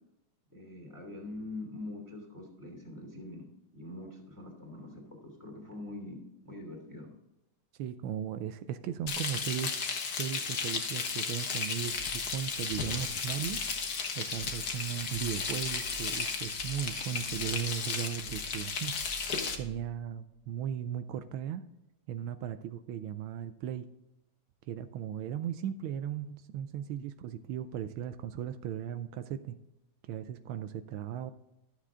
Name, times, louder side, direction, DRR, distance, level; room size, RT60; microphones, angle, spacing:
voice 1, 0.5-3.5 3.7-6.2 6.4-7.1, left 2 dB, 10° right, 1 dB, 2.7 m, -44 dB
voice 2, 7.8-9.8 10.1-13.6 14.1-19.0 19.6-21.6 22.1-23.9 24.7-29.6 30.0-31.3, right 9 dB, 85° right, 10 dB, 1.4 m, -37 dB
Frying (food), 9.1-19.6, left 5 dB, 55° left, 1.5 m, -34 dB
sound 1, 11.8-20.9, right 4 dB, 35° left, 2.2 m, -51 dB
12.5 x 7.5 x 3.7 m, 0.91 s
omnidirectional pair, 2.3 m